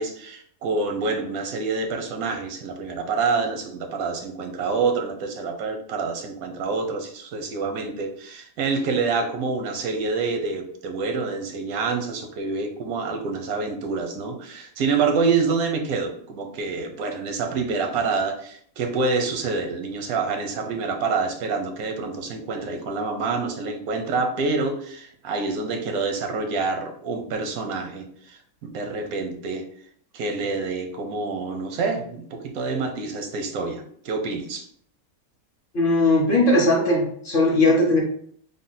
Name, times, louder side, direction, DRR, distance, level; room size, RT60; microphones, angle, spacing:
voice 1, 0.0-29.6 30.1-34.7, right 4 dB, 90° right, 5 dB, 1.1 m, -27 dB
voice 2, 35.7-38.0, left 2 dB, 50° left, -1 dB, 0.8 m, -19 dB
3.5 x 2.1 x 3.9 m, 0.62 s
omnidirectional pair, 1.5 m